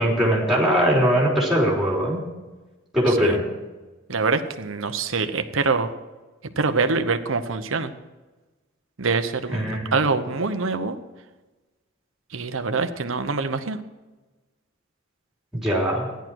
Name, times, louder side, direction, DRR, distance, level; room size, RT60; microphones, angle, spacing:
voice 1, 0.0-2.2 2.9-3.4 9.5-9.9 15.5-16.1, equal, ahead, -3 dB, 3.4 m, -21 dB
voice 2, 4.1-5.9 6.6-7.9 9.0-9.7 9.9-11.0 12.3-13.8, right 4 dB, 70° right, 9 dB, 0.9 m, -24 dB
14.0 x 10.5 x 4.6 m, 1.2 s
head